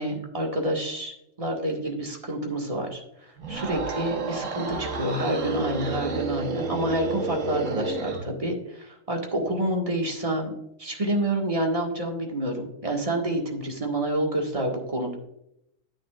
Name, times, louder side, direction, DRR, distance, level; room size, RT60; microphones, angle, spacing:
voice 1, 0.0-10.5 10.8-15.2, right 1 dB, 25° right, 0 dB, 1.8 m, -28 dB
sound 1, 3.4-8.3, right 3 dB, 75° right, 1.4 m, -31 dB
9.8 x 9.1 x 2.5 m, 0.78 s
omnidirectional pair, 1.3 m